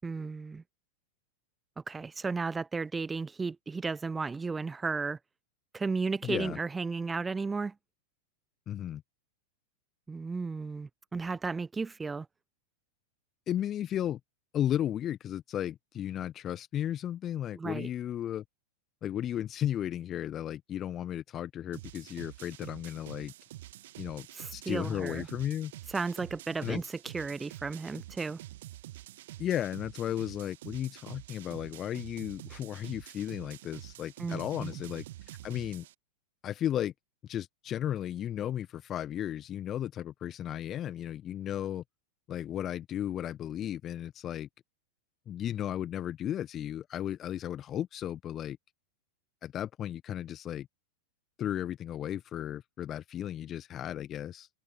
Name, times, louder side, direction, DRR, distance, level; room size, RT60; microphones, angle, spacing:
voice 1, 0.0-0.6 1.9-5.2 5.7-7.7 10.1-12.3 17.5-17.9 24.3-25.3 25.9-28.4 34.2-34.8, right 4 dB, 15° right, 1.1 m, -34 dB
voice 2, 6.2-6.6 8.7-9.0 13.5-14.2 14.5-18.4 19.0-23.3 24.0-24.3 24.5-25.7 26.6-26.8 29.4-35.0 35.4-35.8 36.4-36.9 37.2-41.8 42.3-44.5 45.3-48.6 49.4-50.7 51.4-54.5, left 11 dB, 30° left, 1.4 m, -34 dB
sound 1, 21.7-35.9, right 15 dB, 55° right, 2.1 m, -47 dB
figure-of-eight pair, 90°, 0 cm